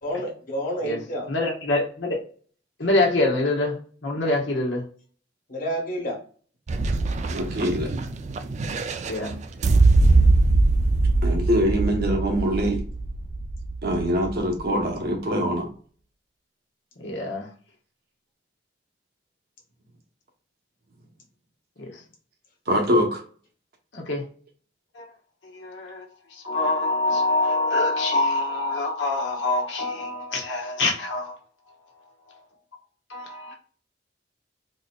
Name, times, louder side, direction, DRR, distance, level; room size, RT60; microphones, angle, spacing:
voice 1, 0.0-1.3 5.5-6.2, equal, 50° left, 1.3 m, -29 dB
voice 2, 1.3-2.2 2.8-4.8 9.0-9.4 17.0-17.5 21.8-22.0 23.9-24.2 24.9-25.1 25.5-26.0 26.4-31.4 33.1-33.5, left 2 dB, 85° left, 1.1 m, -25 dB
sound 1, 6.7-14.7, right 2 dB, 40° right, 0.3 m, -22 dB
voice 3, 7.3-7.9 11.2-12.8 13.8-15.7 22.7-23.2, equal, 60° right, 0.9 m, -23 dB
4.0 x 2.7 x 2.2 m
head